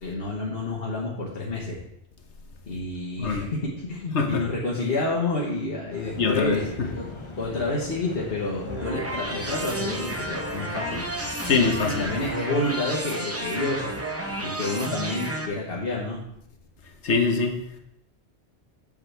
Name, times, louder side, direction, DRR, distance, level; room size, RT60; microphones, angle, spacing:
voice 1, 0.0-1.8 2.7-7.1 7.4-11.0 12.0-13.8 14.4-16.2, left 2 dB, 60° left, -5 dB, 1.4 m, -29 dB
voice 2, 3.2-3.5 4.1-4.4 6.1-6.9 11.4-12.1 17.0-17.8, left 4 dB, 90° left, 4 dB, 1.3 m, -24 dB
sound 1, 5.9-12.4, left 3 dB, 35° left, 0.7 m, -41 dB
sound 2, 8.6-15.5, right 1 dB, 15° right, 0.6 m, -32 dB
7.4 x 7.1 x 3.3 m, 0.77 s
omnidirectional pair, 1.1 m